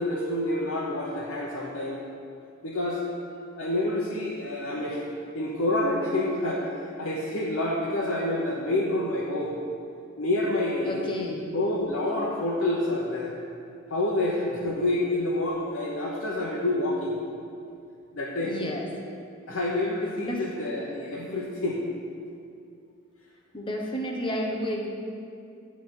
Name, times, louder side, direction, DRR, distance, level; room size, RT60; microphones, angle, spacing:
voice 1, 0.0-2.0 2.6-3.0 3.6-5.0 5.3-6.6 7.0-9.5 10.2-11.2 11.5-13.3 13.9-17.2 18.1-18.6 19.5-21.8, left 1 dB, 80° left, -5 dB, 0.9 m, -28 dB
voice 2, 10.8-11.5 18.4-18.9 20.2-20.4 23.5-24.9, equal, 25° left, 0 dB, 0.7 m, -31 dB
9.6 x 3.5 x 6.1 m, 2.5 s
head